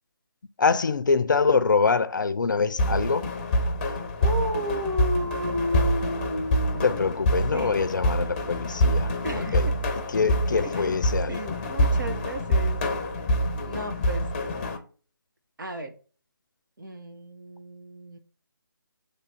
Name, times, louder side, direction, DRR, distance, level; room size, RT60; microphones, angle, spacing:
voice 1, 0.6-3.3 6.8-9.7 10.1-11.4, left 4 dB, 55° left, 0.5 m, -24 dB
sound 1, 2.8-14.8, equal, 25° left, 0.7 m, -26 dB
voice 2, 4.2-7.2 7.5-7.9 9.2-9.7 10.6-11.0 11.3-12.8 13.7-14.2 15.6-15.9 16.8-18.2, equal, 60° right, 1.3 m, -33 dB
7.8 x 3.3 x 4.4 m
figure-of-eight pair, 155°, 12 cm